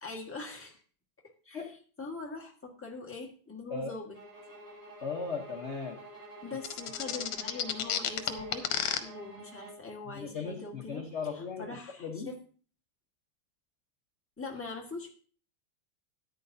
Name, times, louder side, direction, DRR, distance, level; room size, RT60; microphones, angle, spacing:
voice 1, 0.0-0.8 1.4-1.6 2.0-4.2 6.4-8.6 9.0-11.0 11.3-12.3 14.4-15.1, left 3 dB, 5° left, 0 dB, 1.4 m, -42 dB
sound 1, 4.1-9.9, right 1 dB, 45° right, 6.0 m, -49 dB
voice 2, 5.0-6.0 10.0-11.7 12.0-12.3, left 5 dB, 45° left, 2 dB, 1.0 m, -37 dB
sound 2, 6.6-9.0, left 10 dB, 80° left, 1.7 m, -30 dB
13.5 x 9.7 x 2.7 m, 0.41 s
omnidirectional pair, 2.4 m